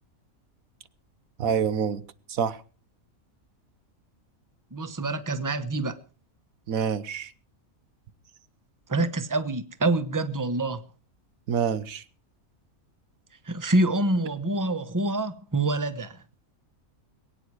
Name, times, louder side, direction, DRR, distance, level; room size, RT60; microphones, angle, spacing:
voice 1, 1.4-2.0 2.3-2.6 6.7-7.3 11.5-12.0, right 7 dB, 75° right, 1.4 m, -26 dB
voice 2, 4.7-6.0 8.9-10.8 13.4-16.2, right 2 dB, 15° right, 0.9 m, -26 dB
22.0 x 9.6 x 4.7 m
omnidirectional pair, 1.5 m